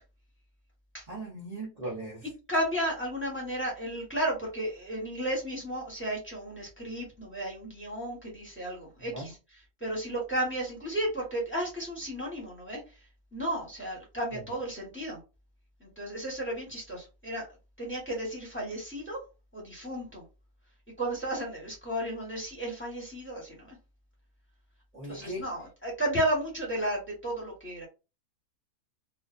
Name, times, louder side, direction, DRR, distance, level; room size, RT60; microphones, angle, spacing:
voice 1, 1.1-2.2 9.0-9.3 14.3-14.4 24.9-25.4, right 1 dB, 40° right, -4 dB, 0.6 m, -38 dB
voice 2, 2.5-9.4 9.8-13.0 13.3-15.2 15.8-17.5 17.8-19.2 19.5-20.2 21.0-23.8 25.1-27.9, right 1 dB, 10° left, -3 dB, 1.0 m, -33 dB
2.5 x 2.3 x 2.4 m, 0.29 s
omnidirectional pair, 1.6 m